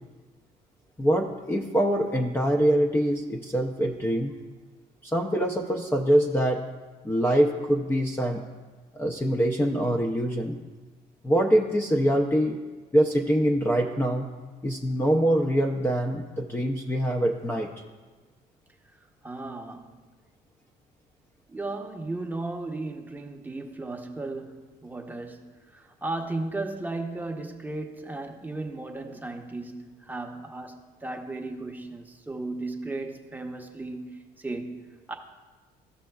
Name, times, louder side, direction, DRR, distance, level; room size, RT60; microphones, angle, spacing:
voice 1, 1.0-4.3 5.0-6.6 7.0-8.4 9.0-10.6 11.2-12.6 12.9-14.3 14.6-17.7, equal, 15° left, 0.5 m, -24 dB
voice 2, 19.0-19.9 21.5-35.1, right 2 dB, 10° right, 0.8 m, -35 dB
14.0 x 6.2 x 2.3 m
cardioid pair, 110°, 17 cm